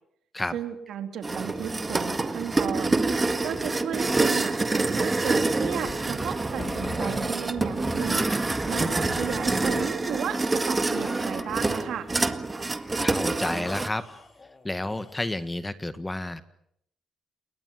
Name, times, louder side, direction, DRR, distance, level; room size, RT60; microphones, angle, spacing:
voice 1, 0.5-3.0 3.4-8.3 8.7-12.1, right 9 dB, 70° right, 7 dB, 3.4 m, -34 dB
sound 1, 1.2-13.9, right 3 dB, 20° right, 1.8 m, -27 dB
sound 2, 5.6-10.0 10.8-12.1 12.6-13.2 13.6-15.5, left 3 dB, 30° left, 4.1 m, -41 dB
voice 2, 13.0-14.1 14.6-16.4, left 1 dB, 15° left, 12 dB, 1.7 m, -30 dB
28.5 x 21.5 x 7.7 m, 0.72 s
cardioid pair, 90°, 0 cm